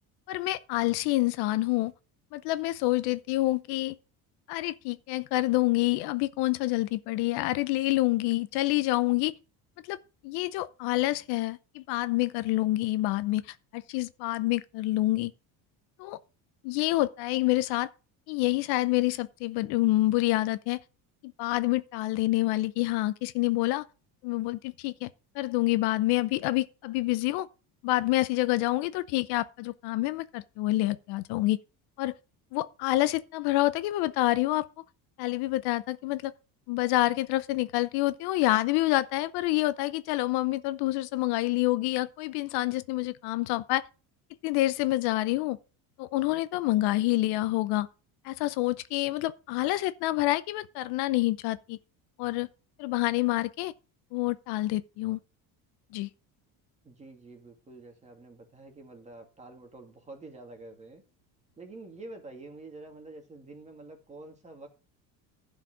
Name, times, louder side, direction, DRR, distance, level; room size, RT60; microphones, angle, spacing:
voice 1, 0.3-1.9 2.3-4.0 4.5-9.3 9.9-10.0 10.2-15.3 16.0-16.2 16.6-17.9 18.3-20.8 21.2-23.8 24.2-25.1 25.3-27.5 27.8-31.6 32.0-32.2 32.5-34.7 35.2-36.3 36.7-43.8 44.4-45.6 46.0-47.9 48.2-51.8 52.2-52.5 52.8-53.7 54.1-55.2 55.9-56.1, left 18 dB, 70° left, 0.8 m, -27 dB
voice 2, 56.8-61.0 61.6-64.7, right 2 dB, 15° right, 2.3 m, -47 dB
11.5 x 5.0 x 6.2 m
cardioid pair, 145°, 40 cm